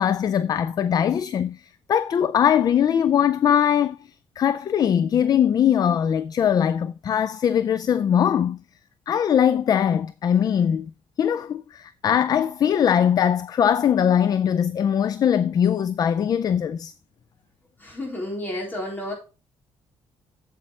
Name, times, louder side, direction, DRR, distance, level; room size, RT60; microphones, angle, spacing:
voice 1, 0.0-1.6 1.9-4.0 4.4-8.6 9.1-10.9 11.2-16.9, left 9 dB, 40° left, 0.4 m, -21 dB
voice 2, 17.8-19.1, left 1 dB, 20° left, 4.0 m, -31 dB
8.2 x 7.6 x 3.3 m
cardioid pair, 160°, 10 cm